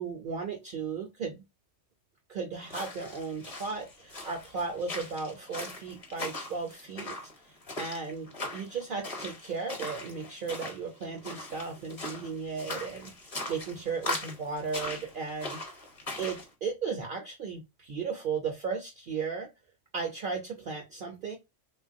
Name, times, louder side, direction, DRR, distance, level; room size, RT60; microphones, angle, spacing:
voice 1, 0.0-1.4 2.3-15.6 16.2-19.5 19.9-21.4, right 5 dB, 55° right, 0.6 m, -35 dB
sound 1, 2.6-16.5, left 2 dB, 35° left, 0.8 m, -40 dB
3.2 x 2.3 x 2.5 m
omnidirectional pair, 1.3 m